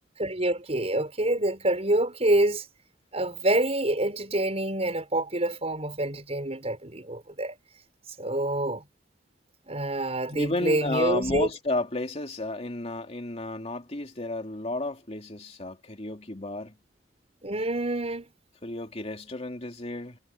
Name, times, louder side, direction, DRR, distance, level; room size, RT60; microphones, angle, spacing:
voice 1, 0.2-2.6 3.1-7.5 8.2-8.8 9.7-11.5 17.4-18.3, right 1 dB, 35° right, 5.9 m, -27 dB
voice 2, 10.3-16.7 18.6-20.2, left 2 dB, 35° left, 3.0 m, -32 dB
head